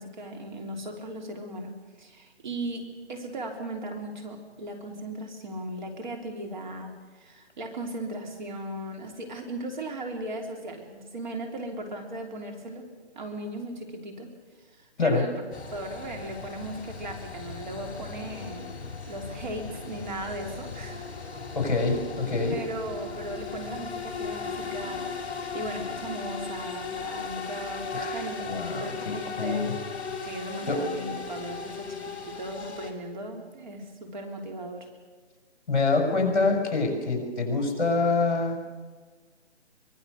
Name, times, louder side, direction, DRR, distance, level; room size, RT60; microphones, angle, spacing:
voice 1, 0.0-12.9 13.1-14.3 14.7-15.3 15.7-18.7 19.1-21.1 22.5-29.7 30.2-34.9, right 1 dB, 40° right, 2 dB, 3.5 m, -37 dB
sound 1, 15.5-32.9, left 4 dB, 20° left, 3.0 m, -37 dB
voice 2, 21.5-22.6 27.9-29.8 30.7-30.9 35.7-38.6, left 3 dB, 40° left, 2 dB, 5.9 m, -26 dB
24.5 x 21.5 x 6.6 m, 1.4 s
hypercardioid pair, 165°, 34 cm